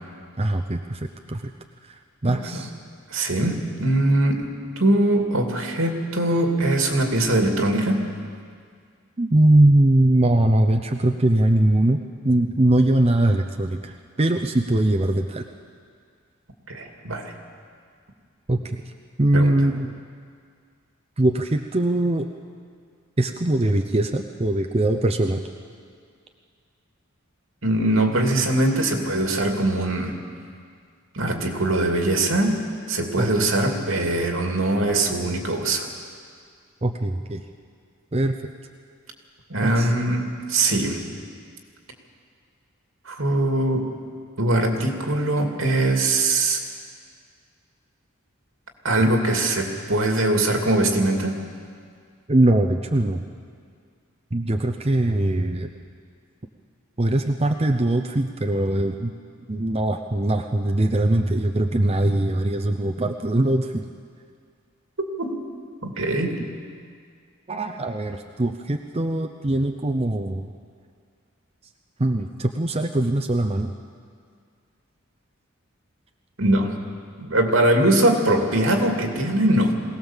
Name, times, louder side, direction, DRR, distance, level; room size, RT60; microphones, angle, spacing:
voice 1, 0.4-1.5 2.2-2.7 9.2-15.4 18.5-18.6 19.2-19.9 21.2-22.3 23.2-25.4 33.2-33.5 36.8-37.4 38.1-38.3 39.6-39.9 49.0-49.1 52.3-53.2 54.3-55.7 57.0-59.1 59.5-63.9 66.0-66.1 67.5-70.5 72.0-73.7, right 1 dB, 30° right, 4 dB, 0.7 m, -21 dB
voice 2, 2.2-2.6 3.1-8.1 16.7-17.3 19.3-19.5 27.6-30.2 31.1-35.9 39.5-41.0 43.0-43.9 44.4-46.6 48.8-51.4 65.0-65.3 65.8-66.3 76.4-76.8 77.2-79.7, right 1 dB, 75° right, 3 dB, 2.5 m, -22 dB
22.5 x 18.0 x 7.3 m, 2.1 s
head